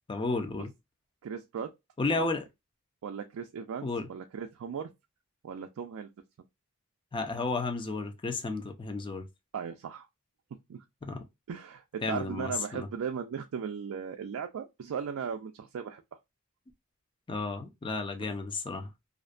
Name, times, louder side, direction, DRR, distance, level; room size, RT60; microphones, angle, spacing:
voice 1, 0.1-0.7 2.0-2.5 3.8-4.1 7.1-9.3 11.0-11.2 12.0-12.9 17.3-18.9, left 3 dB, 25° left, 0.4 m, -32 dB
voice 2, 1.2-1.7 2.1-2.3 3.0-4.9 5.4-6.1 9.5-10.1 10.7-10.8 11.5-16.0, right 7 dB, 80° right, 0.4 m, -37 dB
2.5 x 2.1 x 2.4 m
head